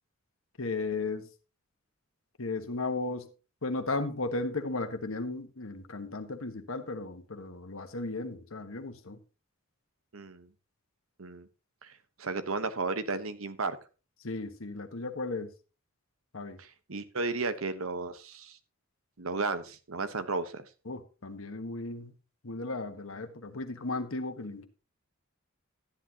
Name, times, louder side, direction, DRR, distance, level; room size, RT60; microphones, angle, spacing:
voice 1, 0.6-1.3 2.4-3.3 3.6-9.2 14.2-15.5 16.3-16.6 20.8-22.1 22.4-24.7, left 3 dB, 70° left, 1.4 m, -35 dB
voice 2, 10.1-10.5 11.2-11.5 11.8-11.9 12.2-13.8 16.6-18.6 19.2-20.7, right 3 dB, 75° right, 1.1 m, -34 dB
13.0 x 10.5 x 2.9 m
head